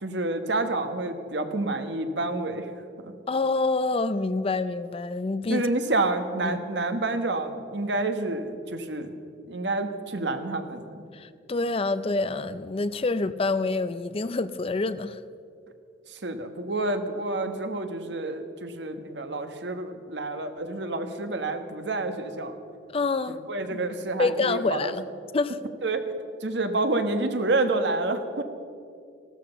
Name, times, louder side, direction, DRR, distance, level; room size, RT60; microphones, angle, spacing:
voice 1, 0.0-2.7 3.0-3.1 5.5-9.1 9.5-11.0 16.1-22.5 23.3-24.9 25.8-26.1 26.4-28.4, right 2 dB, 70° right, 7 dB, 1.3 m, -28 dB
voice 2, 3.3-5.6 6.4-6.6 11.1-15.2 22.9-23.4 23.7-23.8 24.2-25.0 25.3-25.6, left 3 dB, 30° left, 14 dB, 0.4 m, -27 dB
16.0 x 12.5 x 6.9 m, 2.4 s
head